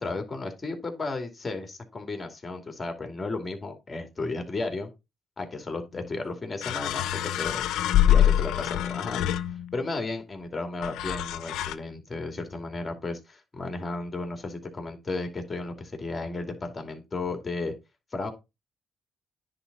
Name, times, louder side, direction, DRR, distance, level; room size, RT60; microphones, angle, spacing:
voice 1, 0.0-4.9 5.4-7.6 8.1-9.3 9.7-17.7 18.1-18.3, left 3 dB, 25° left, 5 dB, 2.7 m, -34 dB
sound 1, 5.9-6.0 6.6-9.9 10.8-11.7, left 11 dB, 85° left, 0.6 m, -25 dB
10.0 x 3.9 x 5.4 m, 0.24 s
cardioid pair, 90°, 0 cm